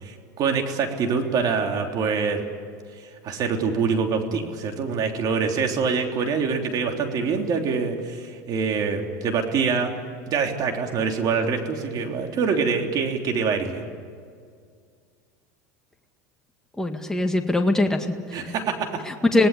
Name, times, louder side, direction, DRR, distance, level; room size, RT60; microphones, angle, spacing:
voice 1, 0.0-2.4 3.0-9.9 10.3-13.8 18.3-19.0, right 5 dB, 45° right, 3 dB, 3.4 m, -25 dB
voice 2, 16.8-18.5 19.1-19.5, left 2 dB, 5° left, 4 dB, 1.9 m, -22 dB
26.0 x 18.5 x 8.4 m, 2.1 s
supercardioid pair, 100°, 9 cm